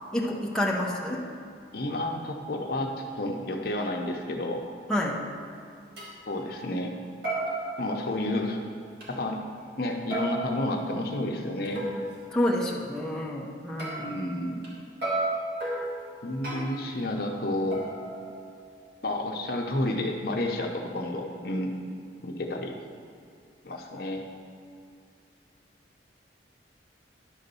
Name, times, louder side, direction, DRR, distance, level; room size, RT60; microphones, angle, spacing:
voice 1, 0.1-1.2 4.9-5.2 12.3-14.2, left 1 dB, 5° left, -4 dB, 0.8 m, -28 dB
voice 2, 1.7-2.9 3.2-4.6 6.3-6.9 7.8-8.6 9.1-9.4 9.8-11.8 14.0-14.6 16.2-17.8 19.0-21.7 22.2-22.7 23.6-24.2, left 1 dB, 55° left, 2 dB, 0.8 m, -30 dB
sound 1, 5.4-5.5 6.0-6.2 6.6-6.9 7.2-8.5 9.0-9.1 10.1-12.1 13.8-14.7 15.0-16.9 17.7-18.8, right 2 dB, 60° right, 1.9 m, -34 dB
10.5 x 4.0 x 6.8 m, 2.4 s
head